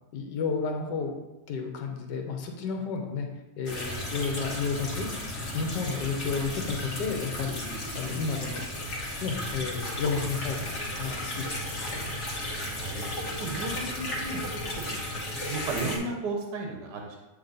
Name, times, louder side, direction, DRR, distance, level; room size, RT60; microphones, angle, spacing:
voice 1, 0.1-1.2 1.5-3.3 3.6-8.7 9.2-10.7 11.0-12.0, left 5 dB, 80° left, 3 dB, 1.5 m, -32 dB
sound 1, 3.7-16.0, left 1 dB, 45° left, 1.4 m, -34 dB
voice 2, 12.8-14.4 14.8-17.2, right 3 dB, 75° right, 1 dB, 1.4 m, -35 dB
8.2 x 3.3 x 4.0 m, 1.1 s
omnidirectional pair, 1.9 m